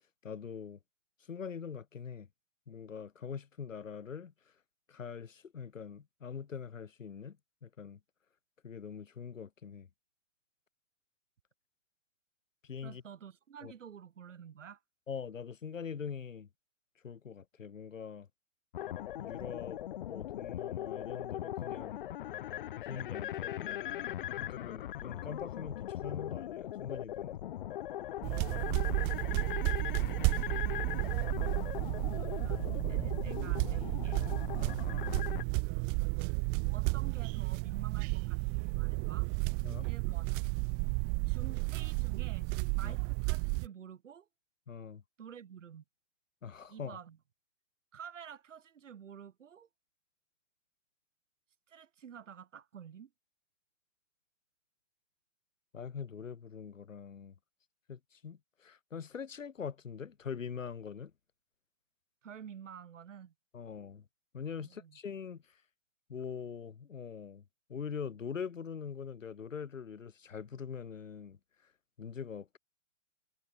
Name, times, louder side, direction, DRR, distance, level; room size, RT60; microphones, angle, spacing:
voice 1, 0.2-0.8 1.3-2.3 2.7-4.3 4.9-7.4 7.6-8.0 8.6-9.9 12.6-13.0 13.6-13.7 15.1-16.5 17.0-18.3 19.2-19.8 20.1-22.0 22.8-23.9 24.4-27.4 31.3-31.7 34.5-34.8 39.6-39.9 42.8-43.0 44.7-45.0 46.4-47.0 55.7-57.3 57.9-61.1 63.5-64.0 64.3-65.6 66.1-67.4 67.7-71.4 72.0-72.6, left 6 dB, 90° left, 6.5 m, -43 dB
voice 2, 12.8-14.8 30.6-31.0 32.1-34.2 36.7-39.3 39.8-40.4 41.3-44.3 45.2-45.8 46.7-47.2 47.9-49.7 51.7-53.1 62.2-63.3 64.6-65.0, right 8 dB, 75° right, 5.1 m, -50 dB
sound 1, 18.7-35.4, left 12 dB, 45° left, 0.7 m, -40 dB
sound 2, 28.2-43.7, right 40 dB or more, 20° right, 1.0 m, -32 dB
hypercardioid pair, 155°, 38 cm